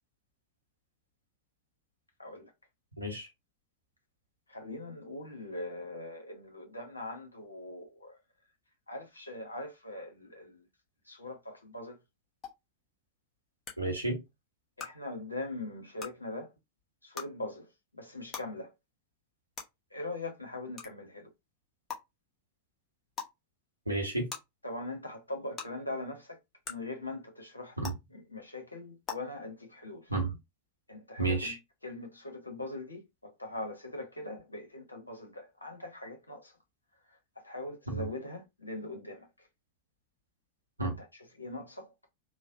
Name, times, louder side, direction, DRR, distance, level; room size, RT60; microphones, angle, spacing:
voice 1, 2.2-2.5 4.5-8.2 8.9-10.7 11.0-12.0 14.8-16.5 17.0-18.7 19.9-21.3 24.6-26.4 26.7-30.1 30.9-31.6 31.8-36.6 37.1-39.5 40.8-41.1 41.3-41.9, left 2 dB, 85° left, 0.8 m, -41 dB
voice 2, 3.0-3.3 13.8-14.2 23.9-24.3 27.8-27.9 30.1-30.4 31.2-31.6 37.9-38.1 40.8-41.0, right 2 dB, 85° right, 0.9 m, -31 dB
sound 1, 12.4-12.5 13.6-13.7 14.8-14.9 16.0-16.1 17.1-17.3 18.3-18.4 19.5-19.6 20.8-20.9 21.9-22.0 23.1-23.3 24.3-24.4 25.6-25.7 26.6-26.7 27.8-27.9 29.0-29.1, left 6 dB, 25° left, 0.9 m, -38 dB
3.2 x 2.0 x 2.6 m
figure-of-eight pair, 90°, 0 cm